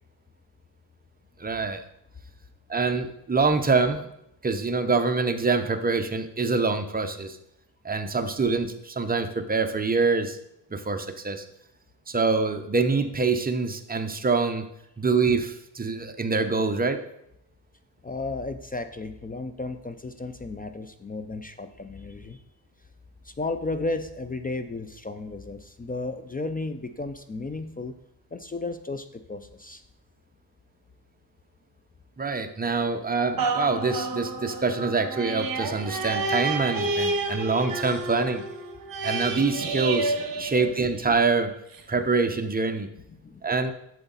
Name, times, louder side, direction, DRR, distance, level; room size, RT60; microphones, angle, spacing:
voice 1, 1.4-1.8 2.7-4.1 4.4-7.4 7.8-10.4 10.7-11.4 12.1-14.6 15.0-17.0 32.2-38.4 39.0-41.5 41.9-42.9 43.4-43.7, right 4 dB, 20° right, 6 dB, 0.7 m, -25 dB
voice 2, 18.0-22.4 23.2-27.9 28.3-29.8 43.1-43.4, left 3 dB, 20° left, 9 dB, 0.4 m, -34 dB
sound 1, 33.4-41.2 41.7-41.8, right 3 dB, 55° right, 1.2 m, -30 dB
8.0 x 7.1 x 3.9 m, 0.78 s
cardioid pair, 105°, 42 cm